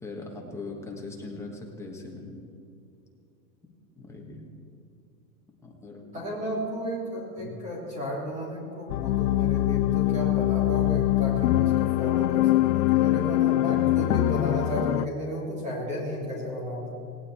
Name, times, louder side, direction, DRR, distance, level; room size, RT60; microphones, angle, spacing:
voice 1, 0.0-2.4 3.6-4.4 5.6-6.2 7.4-7.6, left 3 dB, 5° left, -1 dB, 1.4 m, -40 dB
voice 2, 6.1-16.9, left 1 dB, 15° right, -3 dB, 3.1 m, -33 dB
sound 1, 8.9-15.1, left 16 dB, 70° left, 0.5 m, -23 dB
18.5 x 17.5 x 4.3 m, 2.6 s
supercardioid pair, 165°, 47 cm